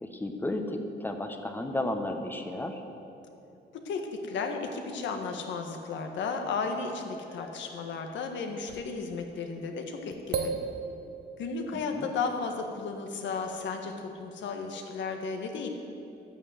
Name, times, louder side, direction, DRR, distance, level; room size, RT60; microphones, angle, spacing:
voice 1, 0.0-2.8 11.7-12.1, left 1 dB, 10° left, 5 dB, 1.0 m, -33 dB
voice 2, 3.7-10.5 11.4-15.7, left 4 dB, 75° left, 4 dB, 1.5 m, -34 dB
sound 1, 7.3-8.1 8.7-8.8 10.1-11.8, right 5 dB, 60° right, 0.9 m, -36 dB
12.0 x 8.9 x 8.0 m, 2.8 s
cardioid pair, 130°, 19 cm